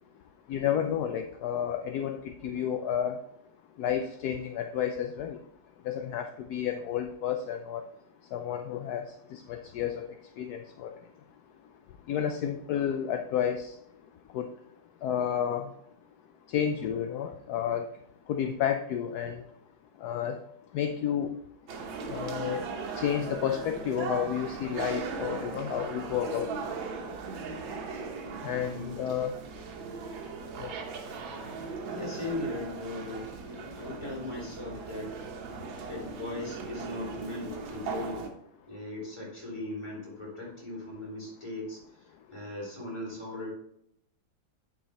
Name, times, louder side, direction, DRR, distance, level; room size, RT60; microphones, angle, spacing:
voice 1, 0.5-3.2 3.8-5.4 5.8-7.8 8.3-10.1 10.4-10.9 12.1-13.8 14.3-14.5 15.0-15.7 16.5-17.9 18.3-19.4 20.0-20.4 20.7-21.3 22.1-22.6 23.0-26.5 28.4-29.3 30.6-30.7, left 9 dB, 70° left, 6 dB, 0.9 m, -31 dB
sound 1, 21.7-38.3, right 4 dB, 80° right, 1.9 m, -38 dB
voice 2, 28.4-29.0 31.9-35.1 35.9-38.3 38.6-43.5, left 2 dB, 15° left, -4 dB, 3.2 m, -39 dB
9.0 x 4.9 x 4.2 m, 0.75 s
omnidirectional pair, 2.1 m